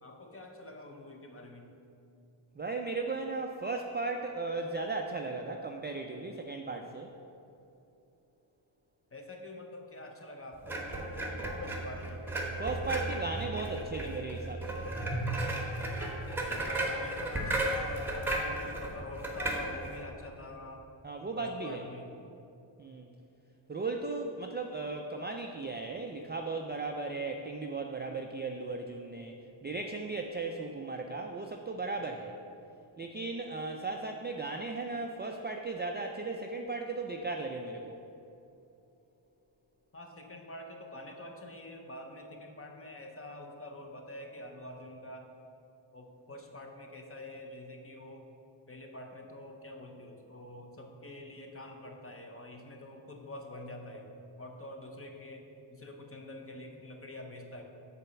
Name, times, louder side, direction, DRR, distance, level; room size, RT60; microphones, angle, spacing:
voice 1, 0.0-1.7 9.1-11.0 11.6-12.2 16.7-20.9 21.4-22.1 39.9-45.3 45.9-48.3 48.7-54.1 54.4-57.6, left 1 dB, 25° left, 3 dB, 0.8 m, -46 dB
voice 2, 2.6-7.1 12.6-14.9 21.0-21.8 22.8-23.1 23.7-29.3 29.6-32.4 33.0-38.0, right 3 dB, 25° right, 3 dB, 0.3 m, -36 dB
sound 1, 10.6-20.0, right 1 dB, 5° right, 1.2 m, -34 dB
6.8 x 4.2 x 5.7 m, 2.8 s
cardioid pair, 90°, 50 cm